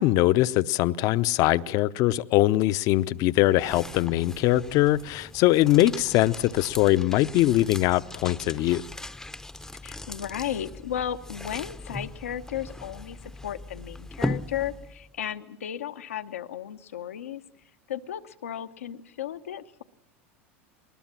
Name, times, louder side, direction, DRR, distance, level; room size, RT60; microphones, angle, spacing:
voice 1, 0.0-8.8, left 16 dB, 55° left, 0.7 m, -22 dB
sound 1, 3.0-15.1, left 2 dB, 5° left, 0.7 m, -39 dB
voice 2, 9.8-13.2 13.4-17.4 17.9-19.8, left 10 dB, 90° left, 0.9 m, -34 dB
20.5 x 20.0 x 7.5 m
hypercardioid pair, 95°, 7 cm